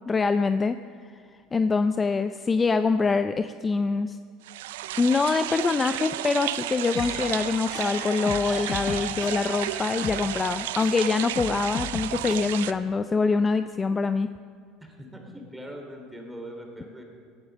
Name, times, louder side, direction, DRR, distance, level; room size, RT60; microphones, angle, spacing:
voice 1, 0.1-0.8 1.5-4.2 5.0-14.3, left 4 dB, 25° left, 11 dB, 0.5 m, -24 dB
sound 1, 4.4-12.7, right 14 dB, 85° right, 0.4 m, -33 dB
sound 2, 6.9-11.0 11.3-12.4, left 6 dB, 40° left, 1.1 m, -37 dB
voice 2, 14.8-17.0, equal, 5° right, 2 dB, 3.2 m, -41 dB
17.5 x 9.0 x 6.2 m, 2.3 s
supercardioid pair, 90°, 0 cm